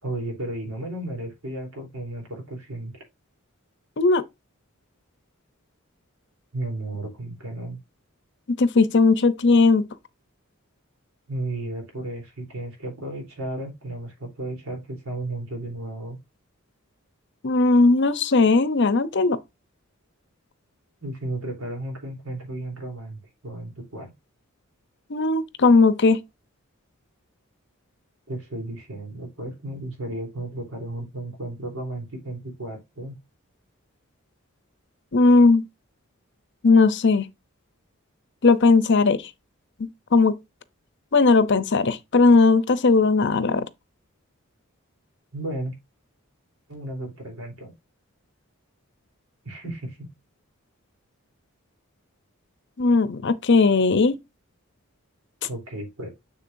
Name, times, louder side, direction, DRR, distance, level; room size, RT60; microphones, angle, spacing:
voice 1, 0.0-2.9 6.5-7.8 11.3-16.2 21.0-24.1 28.3-33.1 45.3-45.7 46.7-47.7 49.4-50.1 55.5-56.1, right 1 dB, 85° right, 3.5 m, -34 dB
voice 2, 8.6-9.8 17.4-19.4 25.1-26.2 35.1-35.6 36.6-37.3 38.4-39.2 39.8-40.4 41.1-43.7 52.8-54.2, left 3 dB, 55° left, 0.7 m, -18 dB
6.9 x 6.9 x 2.6 m
head